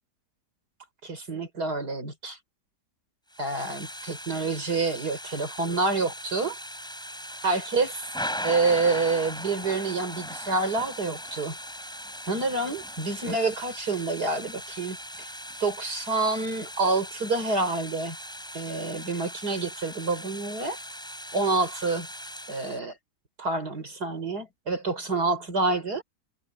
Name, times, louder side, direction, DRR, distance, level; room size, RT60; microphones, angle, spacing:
voice 1, 1.0-2.4 3.4-6.6 7.4-8.1 8.4-11.6 12.3-15.3 15.6-18.2 18.5-20.8 21.3-22.1 22.5-23.0 23.4-26.0, right 3 dB, 70° right, 5.5 m, -28 dB
Thunder / Rain, 3.3-22.8, equal, ahead, 5.4 m, -39 dB
omnidirectional pair, 1.8 m